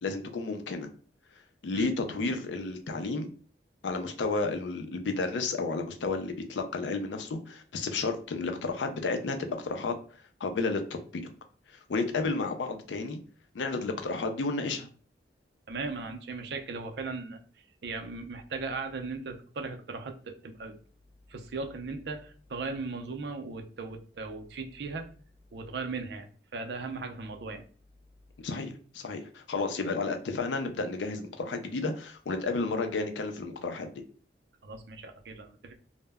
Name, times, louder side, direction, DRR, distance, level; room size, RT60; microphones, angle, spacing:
voice 1, 0.0-0.9 1.6-3.3 3.8-9.9 10.4-11.3 11.7-13.2 13.5-14.9 28.4-33.9, left 3 dB, 85° left, 6 dB, 0.4 m, -32 dB
voice 2, 15.7-17.4 17.8-20.8 21.3-25.1 25.5-27.6 34.6-35.7, right 4 dB, 65° right, 5 dB, 0.4 m, -37 dB
2.1 x 2.0 x 3.3 m, 0.42 s
head